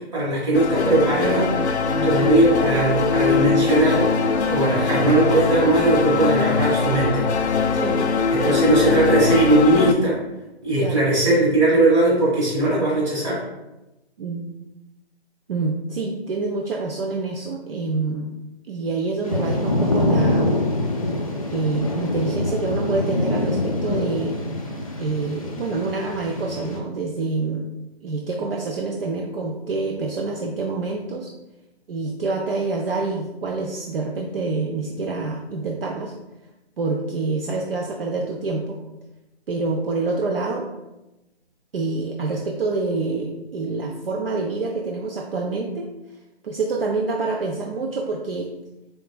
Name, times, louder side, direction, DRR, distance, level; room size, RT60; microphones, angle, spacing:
voice 1, 0.1-1.5 2.0-7.3 8.3-10.2 10.6-13.4, right 2 dB, 25° right, -7 dB, 1.5 m, -19 dB
sound 1, 0.5-9.9, left 4 dB, 85° left, 0.5 m, -21 dB
voice 2, 1.9-2.3 7.8-8.0 8.3-8.6 10.8-11.1 14.2-14.4 15.5-18.3 18.7-20.6 21.5-24.4 25.0-27.7 28.0-31.3 31.9-36.1 36.8-38.8 39.5-40.7 41.7-45.9 46.4-48.5, right 3 dB, 60° right, 0 dB, 0.5 m, -26 dB
Thunder / Rain, 19.2-26.8, left 2 dB, 35° left, 0.4 m, -25 dB
3.8 x 3.6 x 2.2 m, 0.98 s
figure-of-eight pair, 155°, 33 cm